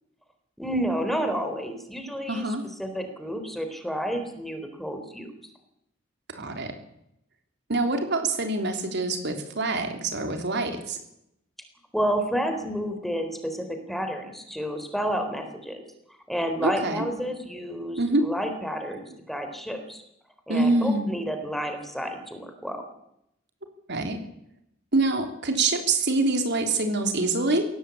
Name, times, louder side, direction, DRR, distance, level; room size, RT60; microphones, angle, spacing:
voice 1, 0.6-2.5 2.8-5.3 11.9-15.8 16.3-20.0 20.5-22.8, equal, ahead, 6 dB, 3.9 m, -30 dB
voice 2, 2.3-2.6 6.3-6.7 7.7-11.0 16.6-17.0 18.0-18.3 20.5-21.1 23.9-24.2 24.9-27.6, right 2 dB, 60° right, 5 dB, 3.4 m, -25 dB
22.0 x 17.5 x 8.5 m, 0.79 s
head